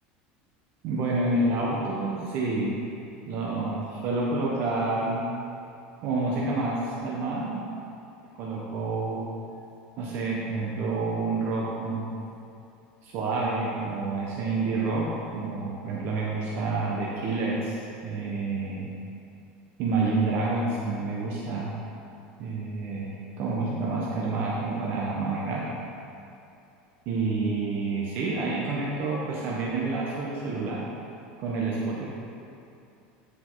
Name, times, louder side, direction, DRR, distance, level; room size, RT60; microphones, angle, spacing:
voice 1, 0.8-2.8 3.2-5.3 6.0-7.6 8.3-9.2 10.0-12.1 13.0-17.7 18.0-18.9 19.8-21.7 22.4-25.6 27.0-30.9 31.4-32.1, right 3 dB, 50° right, -4 dB, 1.3 m, -28 dB
13.0 x 5.7 x 4.0 m, 2.7 s
supercardioid pair, 140°, 5 cm